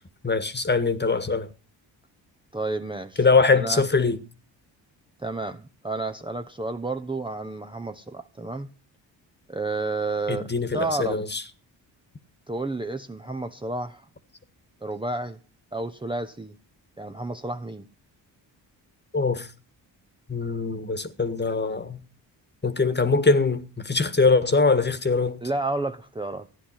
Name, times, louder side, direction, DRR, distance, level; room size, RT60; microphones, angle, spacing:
voice 1, 0.2-1.5 3.2-4.2 10.3-11.4 19.1-19.5 20.3-22.0 22.6-25.4, left 4 dB, 25° left, 1.6 m, -22 dB
voice 2, 2.5-3.8 5.2-8.7 9.5-11.2 12.5-14.0 14.8-15.4 15.7-16.5 17.0-17.9 25.4-26.5, right 2 dB, 10° right, 0.9 m, -31 dB
14.0 x 10.0 x 5.8 m
cardioid pair, 65°, 45 cm